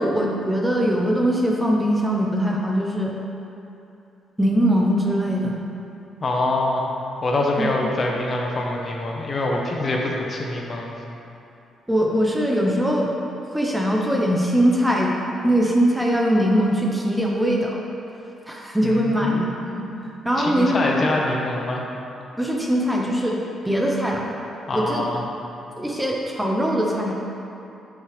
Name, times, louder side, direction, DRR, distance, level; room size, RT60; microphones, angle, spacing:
voice 1, 0.0-3.2 4.4-5.6 7.6-7.7 11.9-13.1 13.5-15.1 15.4-17.8 18.5-19.9 20.2-21.0 22.4-23.4 23.6-24.3 24.7-25.1 25.8-27.1, equal, 5° right, -1 dB, 0.8 m, -21 dB
voice 2, 6.2-6.9 7.2-10.9 18.8-19.4 20.4-21.8 24.7-25.2, left 2 dB, 40° left, -1 dB, 1.0 m, -24 dB
8.0 x 5.8 x 3.3 m, 2.8 s
cardioid pair, 90°, 0 cm